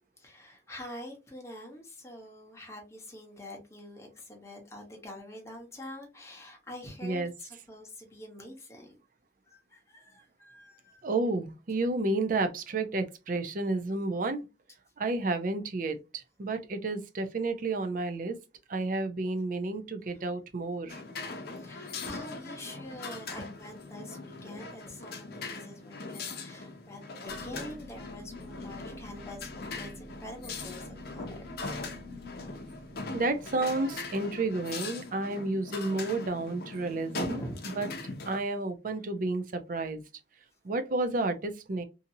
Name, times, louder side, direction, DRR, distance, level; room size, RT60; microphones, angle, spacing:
voice 1, 0.2-9.0 9.5-11.1 20.0-20.3 21.6-31.4 37.2-37.8, left 1 dB, 15° left, 0.9 m, -45 dB
voice 2, 11.0-14.4 15.0-18.3 18.7-21.0 33.1-37.4 37.8-37.9 38.3-40.0 40.6-41.8, right 2 dB, 50° right, 0.5 m, -31 dB
sound 1, 20.9-38.4, left 3 dB, 60° left, 0.6 m, -41 dB
sound 2, 27.3-35.2, left 1 dB, 25° right, 1.1 m, -49 dB
2.7 x 2.6 x 2.6 m
head